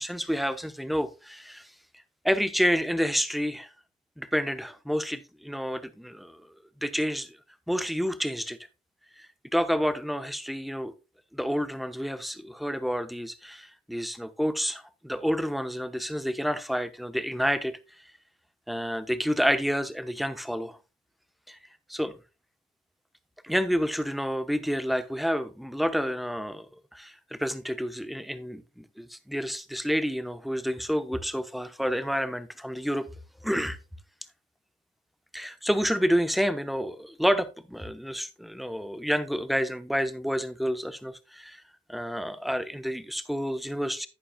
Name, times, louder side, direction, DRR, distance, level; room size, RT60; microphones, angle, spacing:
voice 1, 0.0-1.7 2.2-3.7 4.2-6.4 6.8-7.4 7.7-8.6 9.2-10.9 11.3-17.8 18.7-20.8 21.5-21.6 21.9-22.2 23.4-26.7 26.9-33.1 33.4-33.8 35.3-41.6 41.9-44.1, equal, ahead, 0.9 m, -29 dB
11.5 x 8.8 x 2.3 m
cardioid pair, 90°, 20 cm